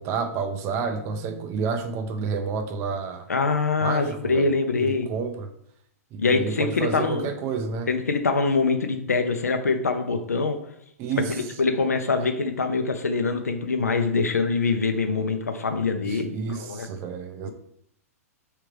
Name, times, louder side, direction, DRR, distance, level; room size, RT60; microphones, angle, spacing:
voice 1, 0.0-3.3 3.8-4.5 4.8-5.5 6.1-7.9 11.0-11.4 16.0-17.5, right 5 dB, 35° right, 7 dB, 0.4 m, -30 dB
voice 2, 3.3-5.1 6.2-7.3 7.9-10.6 11.6-16.9, left 4 dB, 85° left, 7 dB, 0.6 m, -24 dB
4.7 x 3.4 x 3.2 m, 0.72 s
figure-of-eight pair, 110°, 8 cm